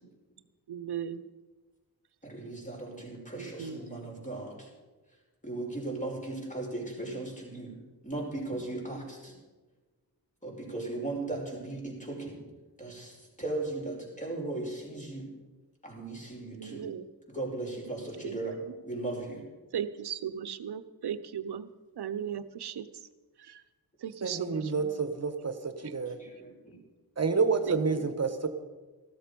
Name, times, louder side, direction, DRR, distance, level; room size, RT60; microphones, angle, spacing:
voice 1, 0.7-1.2 3.4-3.8 7.0-7.2 16.5-17.0 18.2-18.4 19.7-21.7 22.0-22.9 23.5-23.6 24.0-24.9 25.8-25.9 27.7-28.0, right 8 dB, 80° right, 13 dB, 0.8 m, -37 dB
voice 2, 2.2-4.7 5.4-7.7 8.0-9.3 10.4-12.4 12.8-15.3 15.8-16.9 17.3-18.6 18.8-19.4 26.1-26.8, right 2 dB, 20° left, -1 dB, 5.4 m, -37 dB
voice 3, 24.2-26.2 27.2-28.5, right 4 dB, 40° right, 8 dB, 1.3 m, -29 dB
15.0 x 13.0 x 5.3 m, 1.2 s
wide cardioid pair, 75°, 39 cm